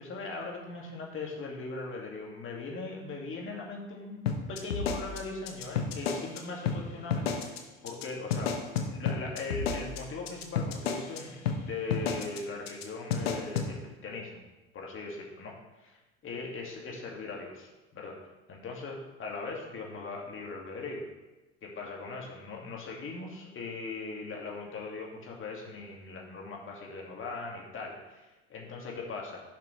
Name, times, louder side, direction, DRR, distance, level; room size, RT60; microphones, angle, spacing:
voice 1, 0.0-7.6 7.8-14.3 14.7-18.2 18.5-21.1 21.6-29.4, left 3 dB, 45° left, -1 dB, 2.3 m, -40 dB
sound 1, 4.3-6.4 6.7-6.8 7.1-7.6 7.9-8.0 8.3-11.2 11.5-11.6 11.9-12.4 12.7-12.8 13.1-13.7, left 6 dB, 85° left, 1.0 m, -30 dB
11.0 x 5.8 x 3.3 m, 1.1 s
hypercardioid pair, 65°, 30 cm